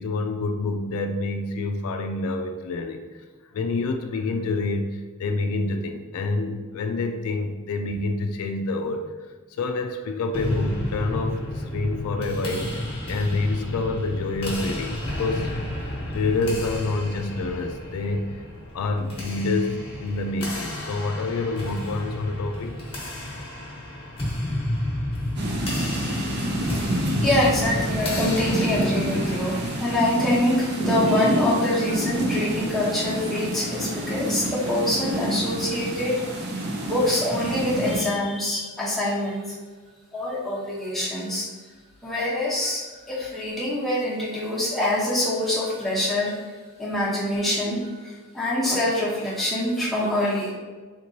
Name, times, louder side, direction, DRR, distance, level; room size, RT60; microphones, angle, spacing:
voice 1, 0.0-3.0 3.5-4.9 5.2-9.0 9.6-12.8 13.1-15.6 16.1-18.4 18.7-22.8, left 3 dB, 75° left, 5 dB, 0.3 m, -27 dB
sound 1, 10.3-29.8, left 1 dB, 25° left, 1.0 m, -31 dB
sound 2, 25.4-38.0, right 1 dB, 50° right, 0.5 m, -28 dB
voice 2, 26.6-36.1 36.8-39.4 40.1-41.5 42.0-46.4 46.8-50.5, left 1 dB, ahead, -8 dB, 0.8 m, -25 dB
3.7 x 2.9 x 2.6 m, 1.4 s
head